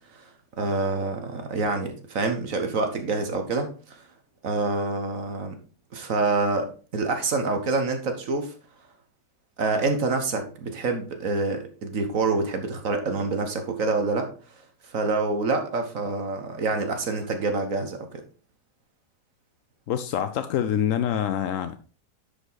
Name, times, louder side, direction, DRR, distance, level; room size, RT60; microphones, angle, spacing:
voice 1, 0.6-4.0 4.4-5.5 5.9-8.5 9.6-14.3 14.9-18.2, right 3 dB, 50° right, 1.5 m, -27 dB
voice 2, 19.9-21.8, left 9 dB, 70° left, 0.8 m, -26 dB
10.5 x 5.0 x 4.0 m
omnidirectional pair, 1.9 m